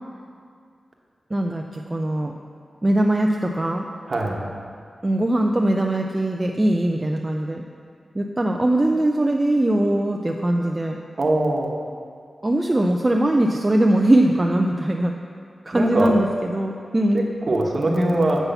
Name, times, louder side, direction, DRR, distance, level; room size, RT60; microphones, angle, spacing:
voice 1, 1.3-2.3 2.8-3.9 5.0-7.6 8.1-11.0 12.4-15.1 15.7-17.3, right 1 dB, 20° right, 1 dB, 0.4 m, -21 dB
voice 2, 4.1-4.4 11.2-11.7 15.7-16.1 17.5-18.5, right 1 dB, 40° right, 0 dB, 1.1 m, -21 dB
8.1 x 5.7 x 6.9 m, 2.2 s
wide cardioid pair, 150°, 0 cm